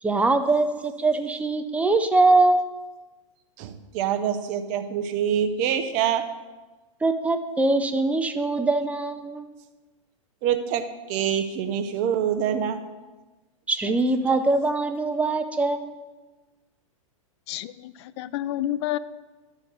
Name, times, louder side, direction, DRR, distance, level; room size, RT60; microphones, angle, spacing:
voice 1, 0.0-2.6 7.0-9.5 13.7-16.0, right 2 dB, 10° right, 7 dB, 0.6 m, -22 dB
voice 2, 3.6-6.2 10.4-12.8, right 9 dB, 45° right, 8 dB, 0.8 m, -25 dB
voice 3, 17.5-19.0, left 13 dB, 55° left, 16 dB, 0.4 m, -29 dB
10.5 x 4.2 x 6.3 m, 1.2 s
hypercardioid pair, 115°, 17 cm